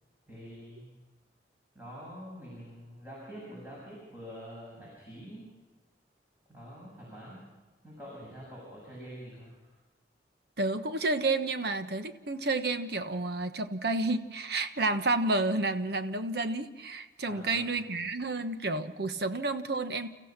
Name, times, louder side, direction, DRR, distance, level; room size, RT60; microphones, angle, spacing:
voice 1, 0.3-0.9 1.7-5.4 6.5-7.5 7.8-9.5 17.2-17.7, equal, 10° right, -6 dB, 7.1 m, -46 dB
voice 2, 10.6-20.1, right 2 dB, 65° right, 9 dB, 1.3 m, -30 dB
30.0 x 15.0 x 6.0 m, 1.3 s
head